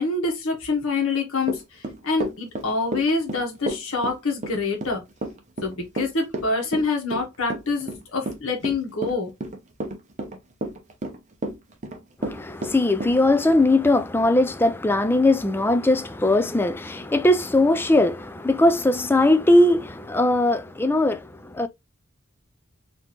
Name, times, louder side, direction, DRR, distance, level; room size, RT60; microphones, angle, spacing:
voice 1, 0.0-1.6 2.0-5.0 5.6-9.3, left 3 dB, 80° left, 1.3 m, -26 dB
Run / Walk footsteps, 1.4-13.2, right 1 dB, 35° right, 0.8 m, -31 dB
voice 2, 12.2-21.7, left 1 dB, 10° left, 0.3 m, -20 dB
4.2 x 2.8 x 2.9 m
head